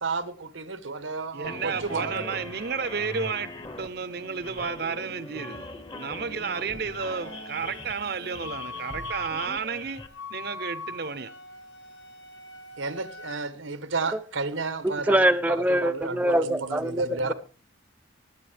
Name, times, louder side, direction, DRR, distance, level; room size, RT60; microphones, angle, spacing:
voice 1, 0.0-2.3 12.8-17.3, right 3 dB, 90° right, 1.2 m, -32 dB
voice 2, 1.3-10.0 10.3-11.3, right 5 dB, 55° right, 0.7 m, -32 dB
sound 1, 1.4-10.1, left 2 dB, 25° left, 0.9 m, -41 dB
Wind instrument woodwind instrument, 6.5-13.4, left 2 dB, 70° left, 1.3 m, -42 dB
voice 3, 14.8-17.0, right 1 dB, 10° right, 0.5 m, -23 dB
20.0 x 9.5 x 3.4 m
head